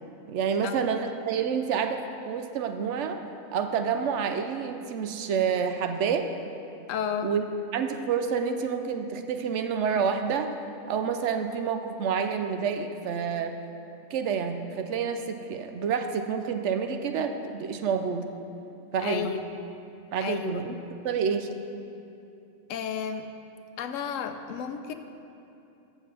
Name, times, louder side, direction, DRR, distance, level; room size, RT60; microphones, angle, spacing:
voice 1, 0.3-3.2 3.5-6.3 7.2-7.4 7.7-10.5 10.9-13.5 14.1-18.2 18.9-19.3 20.1-20.7 21.0-21.5, right 6 dB, 70° right, 7 dB, 0.8 m, -28 dB
voice 2, 6.9-7.3 19.0-19.4 20.2-20.6 22.7-23.2 23.8-24.9, left 8 dB, 80° left, 8 dB, 0.9 m, -32 dB
13.5 x 6.6 x 3.3 m, 2.8 s
omnidirectional pair, 1.3 m